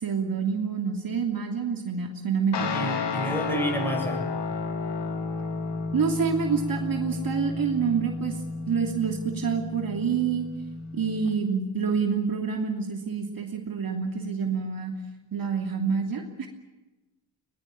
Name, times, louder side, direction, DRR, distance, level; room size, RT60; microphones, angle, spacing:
voice 1, 0.0-2.7 5.9-8.4 8.7-10.5 10.9-14.9 15.3-16.5, right 6 dB, 50° right, 2 dB, 2.9 m, -27 dB
Guitar, 2.5-11.3, left 4 dB, 65° left, 3.5 m, -32 dB
voice 2, 2.7-4.3, right 1 dB, 5° left, 3 dB, 7.5 m, -30 dB
22.0 x 20.0 x 9.4 m, 1.1 s
cardioid pair, 105°, 45 cm